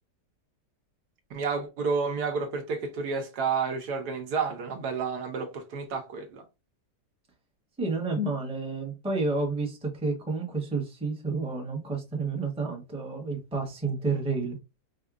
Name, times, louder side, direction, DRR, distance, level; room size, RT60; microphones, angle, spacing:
voice 1, 1.3-6.4, right 5 dB, 70° right, 1.3 m, -30 dB
voice 2, 7.8-14.6, right 3 dB, 5° right, 0.7 m, -30 dB
4.7 x 2.7 x 2.4 m
omnidirectional pair, 1.9 m